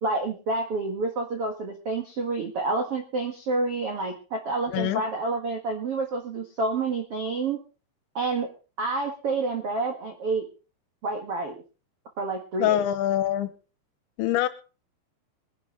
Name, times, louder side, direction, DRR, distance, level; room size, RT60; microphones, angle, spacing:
voice 1, 0.0-7.6 8.1-8.5 8.8-10.4 11.0-11.6 12.2-12.8, right 3 dB, 65° right, 3 dB, 1.4 m, -28 dB
voice 2, 4.7-5.0 12.6-13.5 14.2-14.5, left 12 dB, 80° left, 11 dB, 3.1 m, -24 dB
22.0 x 10.5 x 3.8 m, 0.35 s
omnidirectional pair, 5.4 m